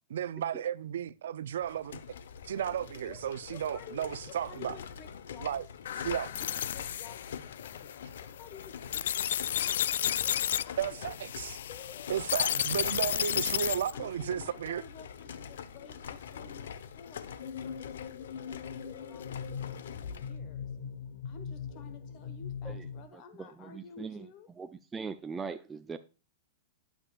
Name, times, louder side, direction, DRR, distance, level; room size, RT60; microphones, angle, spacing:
voice 1, 0.1-2.0 2.4-4.8 5.4-5.7 6.0-6.3 10.8-11.6 12.1-14.8, right 10 dB, 80° right, 0.5 m, -34 dB
sound 1, 1.5-20.4, left 7 dB, 90° left, 0.9 m, -45 dB
voice 2, 2.9-5.6 6.0-9.2 9.5-9.9 10.2-12.1 13.9-20.7 21.2-24.5, left 6 dB, 30° left, 1.3 m, -53 dB
sound 2, 5.9-14.0, left 10 dB, 70° left, 0.3 m, -32 dB
sound 3, 17.4-23.1, left 6 dB, 55° left, 1.0 m, -41 dB
voice 3, 23.1-24.3 24.6-26.0, right 5 dB, 10° right, 0.3 m, -41 dB
8.8 x 8.6 x 2.4 m
supercardioid pair, 175°, 0 cm